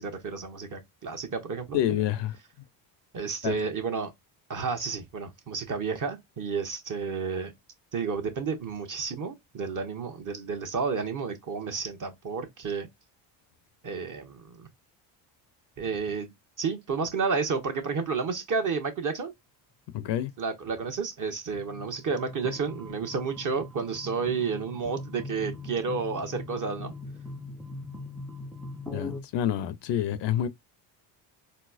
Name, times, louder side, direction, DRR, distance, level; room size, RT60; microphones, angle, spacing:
voice 1, 0.0-1.8 3.1-4.1 4.5-7.5 7.9-12.9 13.8-14.7 15.8-19.3 20.4-26.9, right 5 dB, 40° right, 1.1 m, -31 dB
voice 2, 1.7-2.4 3.4-3.6 19.9-20.3 28.9-30.5, left 11 dB, 60° left, 0.5 m, -28 dB
sound 1, 21.5-29.2, left 2 dB, 5° left, 0.4 m, -41 dB
4.1 x 2.0 x 2.4 m
supercardioid pair, 75°, 50 cm